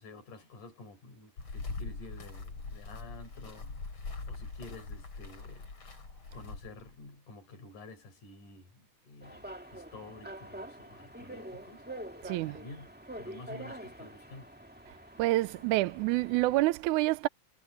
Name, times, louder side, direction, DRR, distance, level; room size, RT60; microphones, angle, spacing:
voice 1, 0.0-3.7 4.3-5.7 6.3-11.9 12.5-12.9 13.2-14.5, left 2 dB, 75° left, 6.1 m, -50 dB
sound 1, 1.4-6.9, left 3 dB, 40° left, 5.0 m, -42 dB
sound 2, 9.2-16.6, right 1 dB, 5° right, 0.8 m, -46 dB
voice 2, 12.2-12.6 15.2-17.3, right 18 dB, 80° right, 2.0 m, -27 dB
omnidirectional pair, 3.6 m